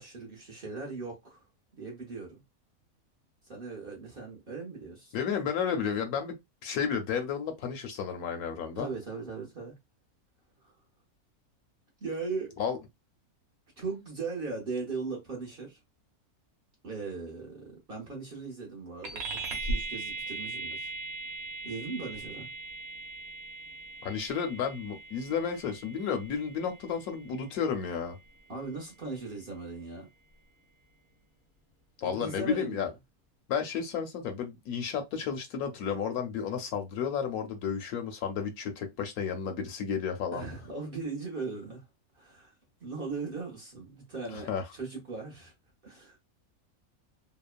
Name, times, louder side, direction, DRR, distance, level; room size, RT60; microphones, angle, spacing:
voice 1, 0.0-1.5 1.8-2.4 3.4-5.1 8.8-9.8 10.6-10.7 12.0-12.6 13.8-15.8 16.8-20.9 21.6-22.5 28.5-30.1 32.0-32.9 40.3-41.8 42.1-42.5 42.8-45.5 45.8-46.2, right 4 dB, 45° right, 0.9 m, -38 dB
voice 2, 5.1-6.3 6.6-8.9 12.6-12.8 24.0-28.2 32.0-32.9 33.5-40.4 44.3-44.6, left 7 dB, 75° left, 1.1 m, -32 dB
sound 1, 19.0-28.9, right 3 dB, 70° right, 1.1 m, -39 dB
2.9 x 2.0 x 2.4 m
omnidirectional pair, 1.6 m